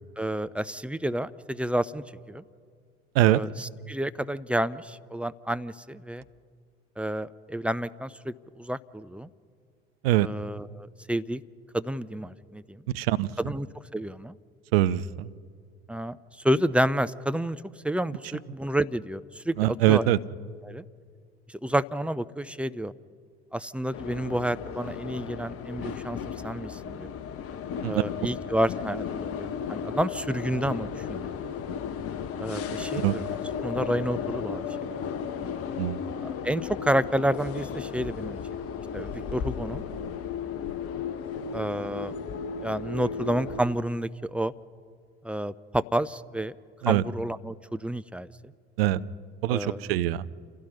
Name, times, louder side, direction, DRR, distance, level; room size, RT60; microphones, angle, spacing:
voice 1, 0.2-2.4 3.2-6.2 7.0-9.3 10.2-11.4 11.7-12.8 13.4-13.7 13.9-14.4 15.9-16.2 16.4-20.1 20.6-20.8 21.6-22.9 23.5-27.1 27.8-31.3 32.4-35.0 36.2-38.4 38.9-39.8 41.5-42.1 42.6-44.5 45.2-46.5 46.9-48.3 49.5-49.9, right 1 dB, 5° right, 13 dB, 0.5 m, -30 dB
voice 2, 12.9-13.3 14.7-15.3 19.6-20.2 27.8-28.0 33.0-33.1 35.8-36.0 46.8-47.0 48.8-49.0 49.4-50.3, right 15 dB, 65° right, 16 dB, 0.6 m, -23 dB
sound 1, 23.9-43.6, left 7 dB, 45° left, 1.3 m, -35 dB
28.5 x 16.0 x 5.7 m, 2.1 s
figure-of-eight pair, 60°, 32 cm